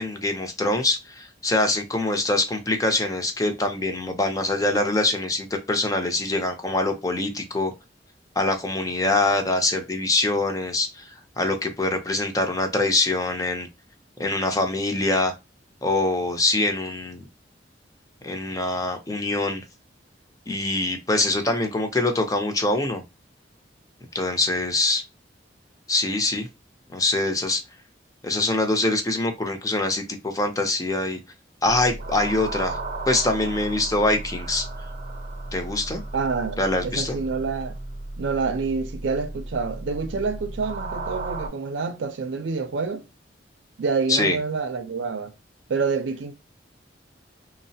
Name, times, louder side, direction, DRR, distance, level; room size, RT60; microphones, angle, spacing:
voice 1, 0.0-7.7 8.4-13.7 14.2-15.3 15.8-17.2 18.2-19.6 20.5-23.0 24.1-25.0 25.9-26.5 26.9-27.6 28.2-31.2 31.6-32.8 33.1-34.6 35.5-36.0 36.6-37.2 44.1-44.4, left 2 dB, 20° left, 0.5 m, -24 dB
sound 1, 31.7-41.5, right 2 dB, 45° right, 0.6 m, -35 dB
voice 2, 36.1-37.8 38.2-43.1 43.8-45.3 45.7-46.3, right 4 dB, 90° right, 0.4 m, -27 dB
3.1 x 2.0 x 2.6 m
head